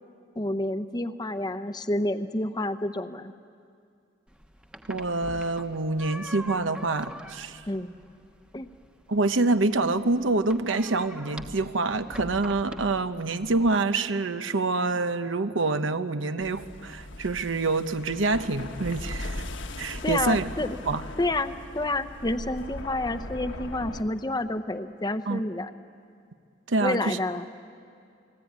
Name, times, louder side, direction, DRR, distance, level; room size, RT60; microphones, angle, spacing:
voice 1, 0.4-3.3 7.7-7.9 8.5-8.7 20.0-20.8 21.2-25.7 26.8-27.5, left 2 dB, 20° left, 10 dB, 0.8 m, -29 dB
sound 1, 4.3-13.8, equal, 5° right, 1.1 m, -44 dB
voice 2, 4.9-7.6 9.1-19.5 19.8-20.4 20.8-21.0 25.3-25.4 26.7-27.2, right 3 dB, 75° right, 10 dB, 1.0 m, -26 dB
sound 2, 16.4-24.0, left 1 dB, 65° left, 1.5 m, -39 dB
29.5 x 20.5 x 9.5 m, 2.4 s
head